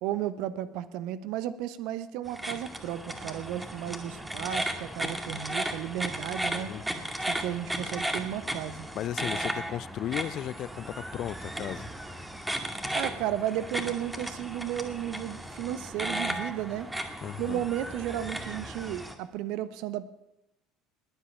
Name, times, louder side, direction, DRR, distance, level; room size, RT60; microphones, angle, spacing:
voice 1, 0.0-6.7 7.2-8.9 12.9-16.9 17.4-20.1, right 12 dB, 60° right, 15 dB, 0.9 m, -34 dB
sound 1, 2.3-19.1, right 1 dB, 10° right, 2.2 m, -35 dB
voice 2, 8.9-11.9 17.2-17.6, left 12 dB, 50° left, 21 dB, 0.5 m, -35 dB
21.0 x 8.2 x 7.2 m, 0.87 s
figure-of-eight pair, 65°, 0 cm